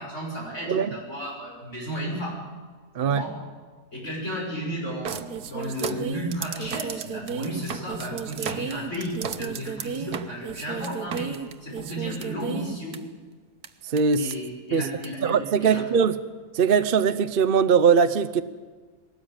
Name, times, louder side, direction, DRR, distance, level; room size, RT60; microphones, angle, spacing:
voice 1, 0.0-2.4 3.0-3.3 3.9-11.3 11.6-13.0 14.2-15.8, equal, 50° left, -2 dB, 6.4 m, -33 dB
sound 1, 5.1-13.0 13.6-13.7 14.0-14.3 15.0-15.1, right 7 dB, 90° right, 1.5 m, -33 dB
voice 2, 13.9-14.3 14.7-14.9 15.2-16.2 16.5-18.4, right 6 dB, 45° right, 11 dB, 0.7 m, -21 dB
21.0 x 18.5 x 8.9 m, 1.4 s
omnidirectional pair, 1.6 m